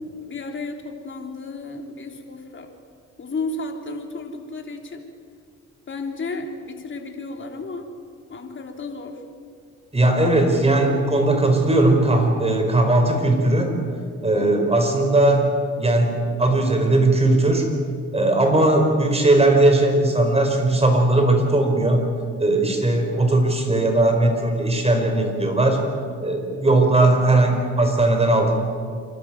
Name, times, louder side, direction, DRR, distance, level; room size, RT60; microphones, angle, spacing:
voice 1, 0.2-2.7 3.2-5.0 5.9-7.9 8.3-9.2 14.4-14.7, left 3 dB, 40° left, 3 dB, 3.4 m, -33 dB
voice 2, 9.9-13.7 14.2-15.5 15.8-17.7 18.1-22.0 22.4-25.8 26.2-28.6, right 2 dB, 20° right, 3 dB, 4.9 m, -18 dB
28.0 x 12.5 x 9.2 m, 2.2 s
cardioid pair, 90°, 30 cm